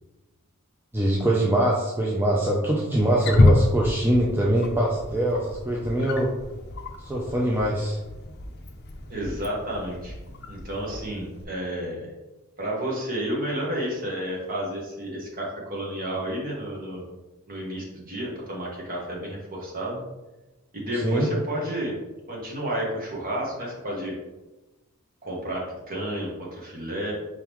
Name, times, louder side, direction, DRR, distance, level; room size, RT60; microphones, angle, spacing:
voice 1, 0.9-6.3 7.0-8.0 21.0-21.3, right 1 dB, 10° right, -4 dB, 0.4 m, -23 dB
Wild animals, 2.9-11.4, left 1 dB, 45° left, 0.5 m, -28 dB
voice 2, 9.1-10.1 10.5-12.1 12.6-17.0 17.5-20.0 20.7-21.9 22.3-24.1 25.2-27.1, right 1 dB, 40° right, -3 dB, 1.2 m, -31 dB
4.7 x 3.6 x 3.0 m, 1.1 s
head